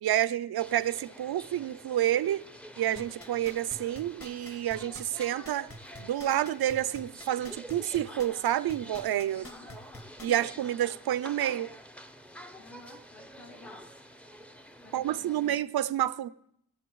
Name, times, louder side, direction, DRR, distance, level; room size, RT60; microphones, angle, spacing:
voice 1, 0.0-2.4 2.8-5.7 6.0-9.5 10.2-11.7 14.9-16.3, right 12 dB, 65° right, 0.5 m, -29 dB
sound 1, 0.6-15.6, equal, 5° left, 0.6 m, -48 dB
sound 2, 3.0-10.5 10.9-11.0, left 1 dB, 30° left, 1.6 m, -46 dB
voice 2, 9.4-9.8 10.3-10.5 12.6-13.8 14.8-15.6, left 2 dB, 70° left, 3.0 m, -52 dB
21.0 x 7.4 x 3.1 m
cardioid pair, 65°, 41 cm